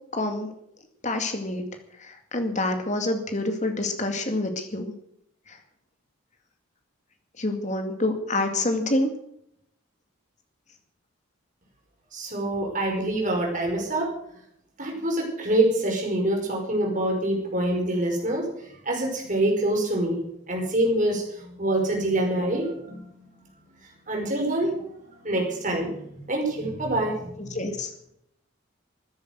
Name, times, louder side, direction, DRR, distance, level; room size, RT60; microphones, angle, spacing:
voice 1, 0.1-0.5 1.0-1.7 2.0-4.9 5.5-5.6 7.4-9.1 27.4-27.9, left 2 dB, 35° left, 6 dB, 2.2 m, -27 dB
voice 2, 12.1-14.1 14.8-18.5 18.9-20.2 20.5-23.1 24.1-24.9 25.2-25.9 26.3-27.6, right 1 dB, 35° right, 0 dB, 5.3 m, -25 dB
14.5 x 10.5 x 8.1 m, 0.73 s
head